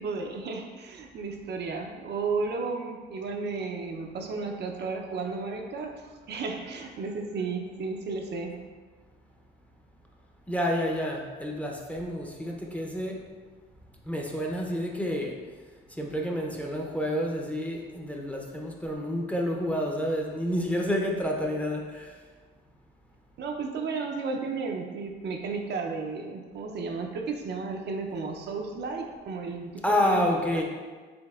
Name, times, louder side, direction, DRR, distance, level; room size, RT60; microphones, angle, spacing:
voice 1, 0.0-8.6 23.4-30.3 30.5-30.6, right 4 dB, 60° right, 2 dB, 0.5 m, -33 dB
voice 2, 10.5-13.2 14.1-15.3 16.0-22.1 29.8-30.6, equal, 5° left, 0 dB, 0.6 m, -29 dB
5.1 x 3.5 x 2.3 m, 1.4 s
cardioid pair, 90°, 20 cm